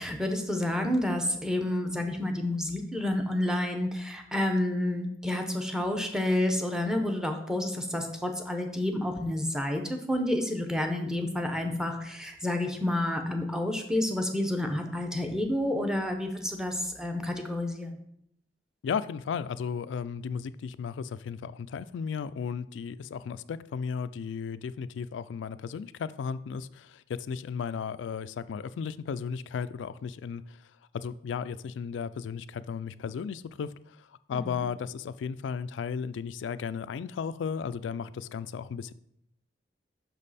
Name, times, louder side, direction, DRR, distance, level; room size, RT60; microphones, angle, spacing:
voice 1, 0.0-17.9 34.3-34.6, left 1 dB, 5° right, 4 dB, 0.8 m, -29 dB
voice 2, 18.8-30.6 30.9-38.9, left 6 dB, 75° left, 15 dB, 0.3 m, -35 dB
6.1 x 5.3 x 4.1 m, 0.74 s
head